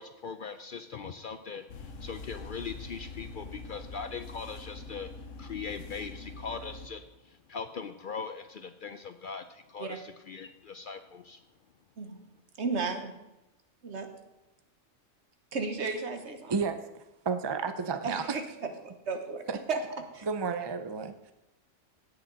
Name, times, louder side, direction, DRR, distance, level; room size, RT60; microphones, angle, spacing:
voice 1, 0.0-5.1 5.4-11.4, left 5 dB, 60° left, 9 dB, 0.6 m, -40 dB
sound 1, 1.7-6.9, left 3 dB, 90° left, 1.3 m, -44 dB
voice 2, 12.6-13.1 13.8-14.1 15.5-16.5 18.0-18.4 19.1-19.4 19.7-19.8 20.1-20.3, right 4 dB, 65° right, 6 dB, 1.4 m, -33 dB
voice 3, 16.5-18.4 19.5-19.6 20.2-21.3, right 5 dB, 45° right, 9 dB, 0.3 m, -32 dB
16.5 x 6.9 x 4.0 m, 0.95 s
omnidirectional pair, 1.3 m